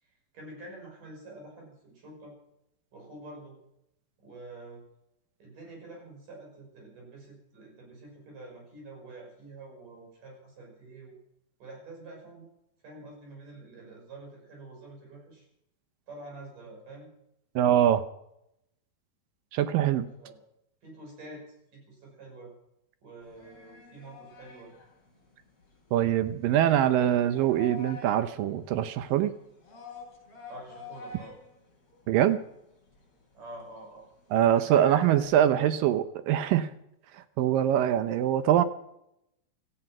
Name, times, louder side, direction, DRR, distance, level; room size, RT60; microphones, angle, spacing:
voice 1, 0.0-2.4 2.9-3.6 4.2-4.8 5.4-11.1 11.6-12.5 12.8-15.5 16.1-17.1 20.2-20.4 20.8-22.5 23.0-24.7 30.5-31.4 33.3-34.1, right 2 dB, 60° right, 0 dB, 7.6 m, -47 dB
voice 2, 17.6-18.0 19.5-20.1 25.9-29.3 32.1-32.4 34.3-36.7 37.4-38.6, right 11 dB, 75° right, 12 dB, 2.4 m, -23 dB
sound 1, 23.2-35.3, left 5 dB, 45° left, 6.8 m, -49 dB
17.0 x 14.0 x 6.0 m, 0.81 s
omnidirectional pair, 4.2 m